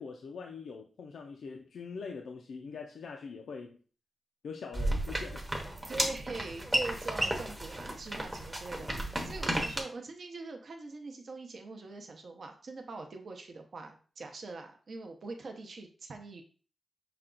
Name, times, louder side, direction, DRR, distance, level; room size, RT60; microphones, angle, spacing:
voice 1, 0.0-3.8 4.4-5.5, left 5 dB, 85° left, 2 dB, 0.4 m, -43 dB
sound 1, 4.7-9.8, right 1 dB, 15° right, 0.8 m, -33 dB
voice 2, 5.9-16.4, right 3 dB, 55° right, 4 dB, 0.7 m, -43 dB
5.8 x 2.2 x 3.8 m, 0.40 s
wide cardioid pair, 160°, 0 cm